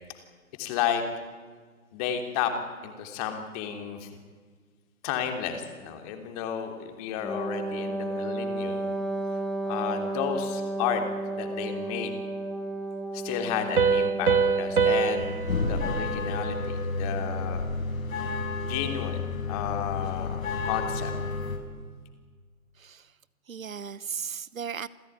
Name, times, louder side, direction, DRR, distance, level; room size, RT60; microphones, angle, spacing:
voice 1, 0.6-1.0 1.9-2.6 2.8-4.1 5.0-8.9 9.7-11.0 11.3-12.1 13.1-17.7 18.6-21.1, left 9 dB, 25° left, 5 dB, 3.2 m, -32 dB
Wind instrument woodwind instrument, 7.2-15.4, right 2 dB, ahead, 1.0 m, -33 dB
Piano, 13.8-17.2, right 5 dB, 85° right, 1.4 m, -26 dB
sound 1, 15.1-21.6, left 3 dB, 65° left, 5.6 m, -31 dB
voice 2, 22.8-23.1 23.5-24.9, right 7 dB, 65° right, 18 dB, 1.1 m, -36 dB
27.5 x 15.5 x 9.5 m, 1.5 s
figure-of-eight pair, 140°, 43 cm